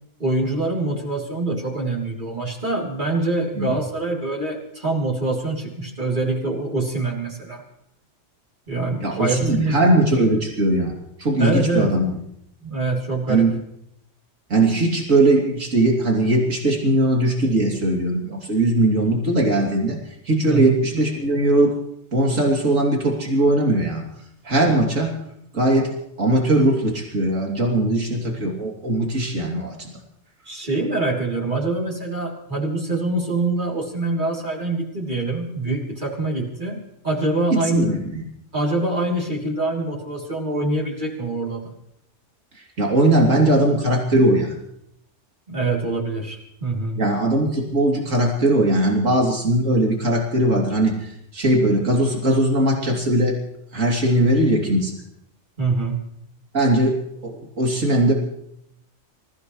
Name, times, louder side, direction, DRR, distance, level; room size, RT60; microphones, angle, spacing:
voice 1, 0.2-7.6 8.7-9.9 10.1-10.3 11.4-12.0 12.6-13.5 20.4-20.8 30.5-38.0 38.5-41.7 45.5-47.0 55.6-56.0, right 2 dB, 40° right, -2 dB, 3.5 m, -24 dB
voice 2, 9.0-10.9 11.2-12.1 13.3-13.6 14.5-20.0 20.3-21.8 22.1-24.1 24.4-25.2 25.5-25.9 26.2-29.9 37.5-38.2 42.8-44.6 47.0-53.4 53.7-54.9 56.5-56.9 57.2-58.1, right 1 dB, 80° right, -1 dB, 3.5 m, -19 dB
27.0 x 16.0 x 3.2 m, 0.74 s
omnidirectional pair, 1.3 m